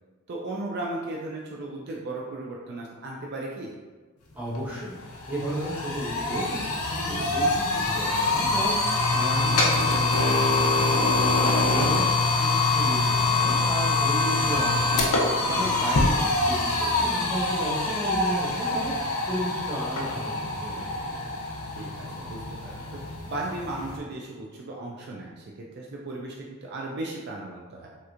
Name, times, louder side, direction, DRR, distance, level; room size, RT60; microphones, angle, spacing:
voice 1, 0.3-3.8 9.3-9.6 21.8-23.0 23.3-25.4 25.7-27.9, right 2 dB, 50° right, -2 dB, 0.3 m, -36 dB
voice 2, 4.3-5.0 5.3-21.0, equal, 10° right, -7 dB, 0.7 m, -34 dB
sound 1, 4.5-4.6 5.0-24.0, left 2 dB, 90° left, 0.6 m, -25 dB
Wind instrument woodwind instrument, 17.6-21.7, right 3 dB, 20° left, 1.2 m, -43 dB
3.2 x 2.9 x 2.5 m, 1.3 s
head